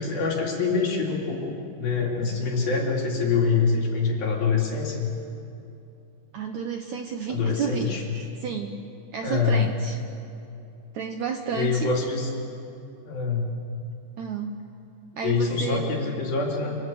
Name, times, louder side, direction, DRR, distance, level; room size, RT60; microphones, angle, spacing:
voice 1, 0.0-5.1 7.3-8.1 9.2-9.6 11.5-12.3 13.1-13.5 15.2-16.8, left 4 dB, 60° left, -2 dB, 5.1 m, -25 dB
voice 2, 6.3-8.8 9.1-10.0 10.9-11.9 14.2-14.6 15.2-16.1, right 6 dB, 70° right, 5 dB, 1.7 m, -31 dB
28.0 x 27.0 x 7.8 m, 2.7 s
omnidirectional pair, 4.7 m